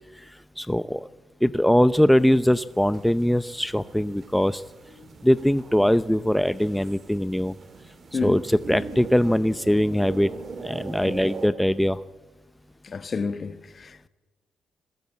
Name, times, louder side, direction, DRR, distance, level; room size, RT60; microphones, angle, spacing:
voice 1, 0.1-1.1 1.4-4.6 5.2-7.5 8.1-10.3 10.6-12.0, equal, 5° left, 0.6 m, -22 dB
sound 1, 2.2-11.5, right 4 dB, 45° right, 2.7 m, -41 dB
voice 2, 12.8-14.1, left 4 dB, 40° left, 1.2 m, -30 dB
21.0 x 17.5 x 8.7 m
cardioid pair, 90°, 0 cm